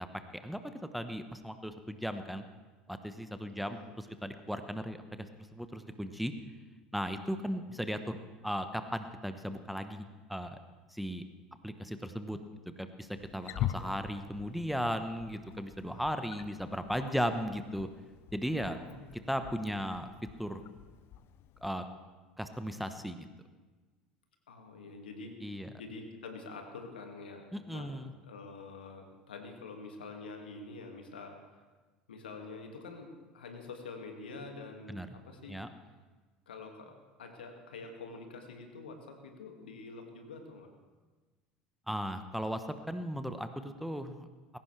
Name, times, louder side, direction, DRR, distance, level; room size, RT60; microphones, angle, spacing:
voice 1, 0.3-2.4 2.9-6.3 6.9-8.2 8.4-10.6 10.9-11.2 11.6-12.4 12.8-13.1 13.3-17.9 18.3-18.8 19.3-20.1 20.4-20.6 21.6-21.8 22.4-23.3 25.4-25.7 27.5-28.1 34.9-35.1 35.5-35.7 41.9-44.2, equal, ahead, 8 dB, 1.1 m, -36 dB
Wild animals, 13.2-21.7, left 11 dB, 50° left, 0.7 m, -43 dB
voice 2, 13.4-13.9 18.6-19.1 24.5-27.9 28.2-31.6 32.1-35.6 36.5-40.7, left 3 dB, 75° left, 4 dB, 2.1 m, -47 dB
20.5 x 17.0 x 3.4 m, 1.3 s
figure-of-eight pair, 70°, 5 cm